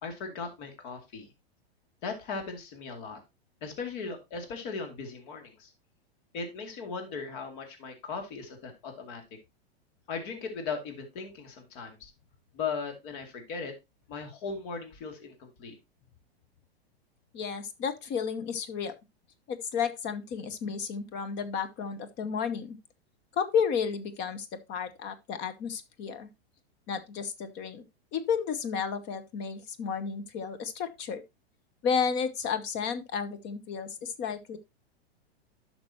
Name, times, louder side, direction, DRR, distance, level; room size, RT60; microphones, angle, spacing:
voice 1, 0.0-1.3 2.0-3.2 3.6-5.7 6.3-9.2 10.1-12.1 12.5-13.8 14.1-15.7, left 5 dB, 50° left, 2.4 m, -38 dB
voice 2, 17.3-18.9 19.5-22.8 23.4-26.3 26.9-27.8 28.1-31.2 31.8-34.6, left 6 dB, 35° left, 0.9 m, -32 dB
11.0 x 6.0 x 2.8 m
hypercardioid pair, 125°, 32 cm